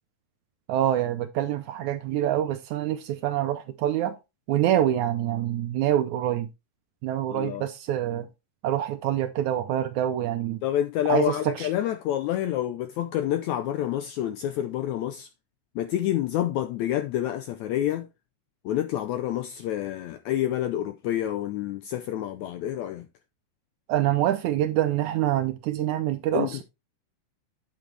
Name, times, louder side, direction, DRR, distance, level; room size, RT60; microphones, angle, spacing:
voice 1, 0.7-4.1 4.5-6.5 7.0-8.3 8.6-10.6 11.1-11.7 23.9-26.6, right 12 dB, 75° right, 1.8 m, -26 dB
voice 2, 7.3-7.7 10.6-15.3 15.7-18.1 18.6-23.1 26.3-26.6, left 12 dB, 80° left, 1.7 m, -28 dB
9.2 x 7.5 x 3.3 m
omnidirectional pair, 3.9 m